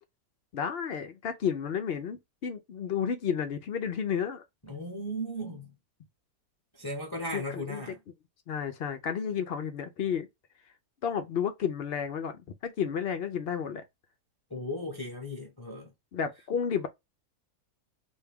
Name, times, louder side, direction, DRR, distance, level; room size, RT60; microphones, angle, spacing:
voice 1, 0.5-4.4 7.3-7.8 8.5-10.3 11.0-13.8 16.1-16.9, left 7 dB, 60° left, 0.6 m, -32 dB
voice 2, 4.6-5.7 6.7-8.0 14.5-15.9, equal, 20° left, 0.8 m, -36 dB
3.4 x 2.7 x 3.5 m
omnidirectional pair, 1.5 m